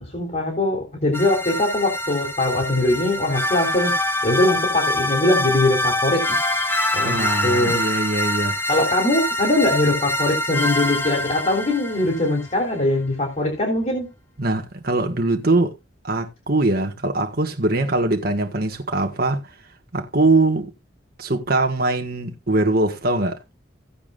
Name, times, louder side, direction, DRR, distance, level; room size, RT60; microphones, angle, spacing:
voice 1, 0.1-3.9 4.2-6.2 6.9-7.8 8.7-14.1, left 2 dB, 40° left, 3.5 m, -21 dB
sound 1, 1.1-12.4, left 1 dB, 10° left, 1.2 m, -25 dB
voice 2, 7.0-8.5 14.4-15.7 16.0-19.5 19.9-20.7 21.2-23.4, right 2 dB, 55° right, 1.7 m, -22 dB
17.5 x 7.1 x 2.6 m
head